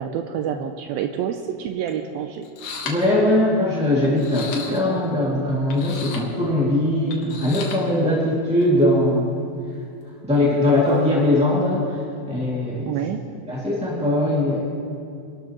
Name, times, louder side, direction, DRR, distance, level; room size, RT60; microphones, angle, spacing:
voice 1, 0.0-2.5 12.9-13.2, right 8 dB, 85° right, 6 dB, 2.2 m, -27 dB
sound 1, 1.9-2.0 2.4-3.1 4.0-5.1 5.7-6.3 7.1-7.8 8.6-8.8 10.6-11.2, left 5 dB, 75° left, 3.2 m, -35 dB
voice 2, 2.8-9.3 10.3-12.0 12.3-12.9 13.5-14.6, left 1 dB, 5° right, -7 dB, 1.1 m, -20 dB
25.5 x 12.5 x 3.1 m, 2.5 s
omnidirectional pair, 4.7 m